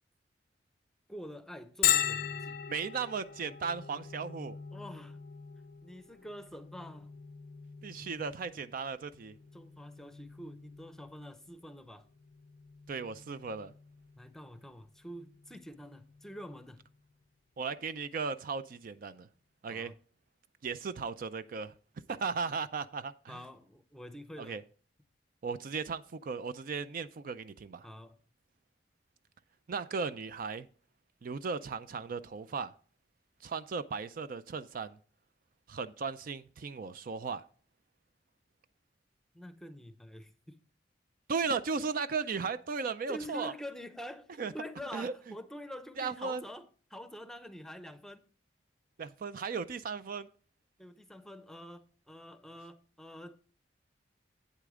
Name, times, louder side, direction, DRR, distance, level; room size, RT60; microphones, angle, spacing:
voice 1, 1.1-2.6 4.7-5.2 5.8-7.1 9.5-12.1 14.2-16.9 19.7-20.0 23.3-24.6 27.8-28.2 39.3-40.6 43.1-48.2 50.8-53.4, equal, 5° left, 0.6 m, -46 dB
Bell, 1.8-17.3, left 10 dB, 60° left, 0.5 m, -39 dB
voice 2, 2.7-4.6 7.8-9.3 12.9-13.7 17.6-19.3 19.6-19.9 20.6-21.7 22.1-23.4 24.4-24.6 25.4-27.9 29.7-30.7 31.2-32.7 33.4-35.0 35.7-37.4 41.3-43.5 44.4-44.5 44.9-45.1 46.0-46.4 49.0-50.3, right 5 dB, 50° right, 0.4 m, -36 dB
8.5 x 8.2 x 3.6 m
head